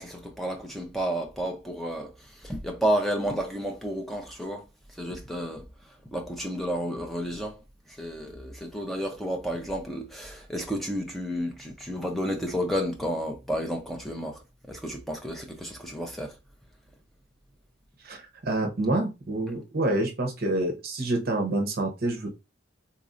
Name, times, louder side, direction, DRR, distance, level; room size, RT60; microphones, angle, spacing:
voice 1, 0.0-2.1 2.4-4.6 5.0-5.6 6.1-7.6 8.0-14.4 14.7-16.3, equal, ahead, 0.6 m, -31 dB
voice 2, 18.4-22.3, right 2 dB, 45° right, 0.8 m, -27 dB
4.1 x 2.6 x 2.5 m
head